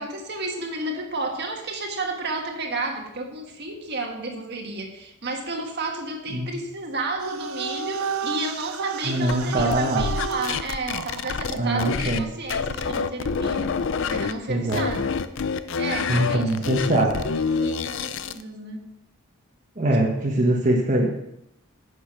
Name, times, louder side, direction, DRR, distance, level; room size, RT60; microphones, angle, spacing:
voice 1, 0.0-15.1 15.8-17.1 17.6-18.9, right 2 dB, 50° right, 3 dB, 1.6 m, -32 dB
sound 1, 7.2-11.9, right 6 dB, 85° right, 0.6 m, -32 dB
voice 2, 9.0-10.1 11.6-12.2 14.5-14.8 16.1-17.2 19.8-21.1, right 1 dB, 35° right, -2 dB, 1.3 m, -22 dB
sound 2, 9.3-12.2 12.5-14.3 14.7-18.4, left 5 dB, 60° left, 0.5 m, -27 dB
10.0 x 6.6 x 6.1 m, 0.83 s
head